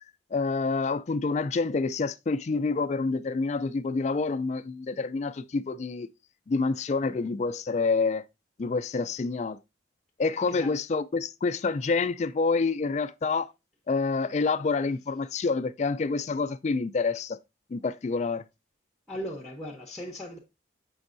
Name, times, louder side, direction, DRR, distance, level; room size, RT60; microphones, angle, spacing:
voice 1, 0.3-6.1 6.5-8.2 8.6-9.6 10.2-13.5 13.9-17.4 17.7-18.4, left 4 dB, 35° left, 0.3 m, -27 dB
voice 2, 19.1-20.4, equal, 5° left, 0.8 m, -38 dB
7.0 x 5.3 x 2.5 m
head